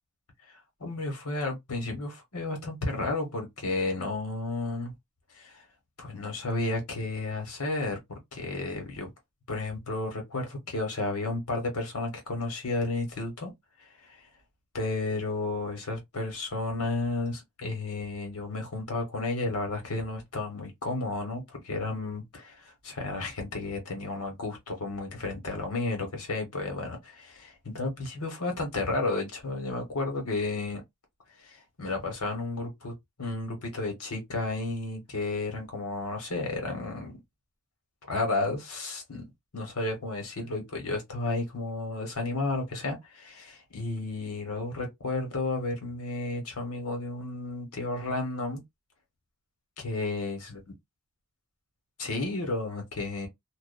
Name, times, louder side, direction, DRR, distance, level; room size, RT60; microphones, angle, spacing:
voice 1, 0.8-4.9 5.3-5.6 6.0-8.0 8.3-9.1 9.5-13.5 14.1-14.2 14.7-30.8 31.4-32.9 33.2-37.2 38.1-39.2 39.5-48.6 49.8-50.6 52.0-53.3, left 2 dB, 85° left, 1.2 m, -32 dB
2.5 x 2.1 x 2.5 m
head